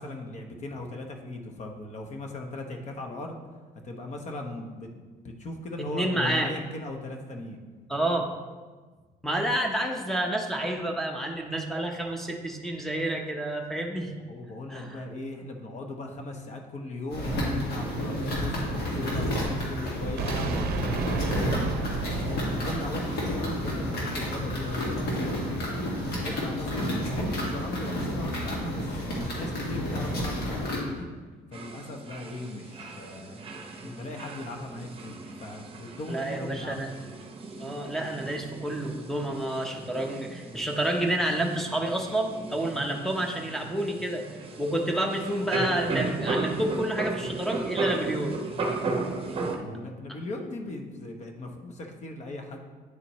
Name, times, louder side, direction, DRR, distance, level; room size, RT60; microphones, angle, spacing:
voice 1, 0.0-3.4 3.8-4.9 5.2-7.6 14.1-21.5 22.0-25.4 26.1-31.1 31.5-33.4 33.8-36.9 42.7-42.9 49.3-52.6, left 2 dB, 45° left, 3 dB, 1.0 m, -38 dB
voice 2, 5.9-6.5 7.9-8.3 9.2-14.1 14.7-15.0 36.1-36.9 37.6-44.3 44.6-48.4, right 1 dB, ahead, 0 dB, 0.8 m, -29 dB
sound 1, 17.1-30.8, equal, 75° left, 1.8 m, -30 dB
sound 2, 20.2-24.1, right 5 dB, 65° right, 0.6 m, -33 dB
sound 3, 31.5-49.6, right 3 dB, 35° right, 0.8 m, -36 dB
9.4 x 4.2 x 3.1 m, 1.4 s
cardioid pair, 110°, 17 cm